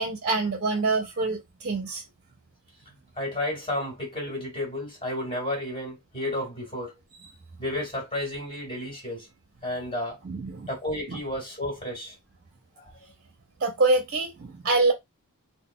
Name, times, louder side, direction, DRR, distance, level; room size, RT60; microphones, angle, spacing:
voice 1, 0.0-2.0 7.2-7.3 10.2-10.7 11.1-11.2 13.6-14.9, right 3 dB, 45° right, 0.6 m, -25 dB
voice 2, 3.2-6.9 7.6-9.3 9.6-10.2 10.7-12.1, left 1 dB, 25° left, 2.0 m, -32 dB
3.9 x 2.1 x 2.2 m
head